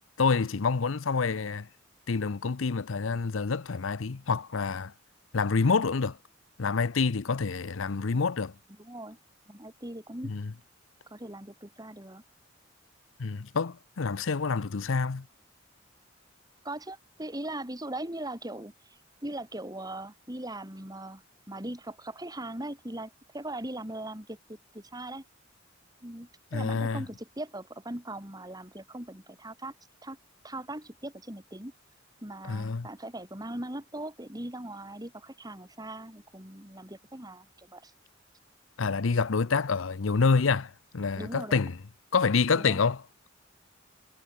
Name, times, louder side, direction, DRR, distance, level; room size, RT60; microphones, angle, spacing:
voice 1, 0.2-1.7 2.1-4.9 5.3-6.2 6.6-8.5 10.2-10.5 13.2-15.2 26.5-27.0 32.5-32.9 38.8-41.8 42.1-43.0, left 4 dB, 80° left, 0.7 m, -27 dB
voice 2, 8.8-9.2 9.5-10.3 11.1-12.2 16.6-18.7 19.2-25.2 26.0-29.7 30.0-30.2 30.4-31.7 32.2-37.9 41.2-41.6 42.5-42.8, right 1 dB, 20° right, 3.8 m, -40 dB
head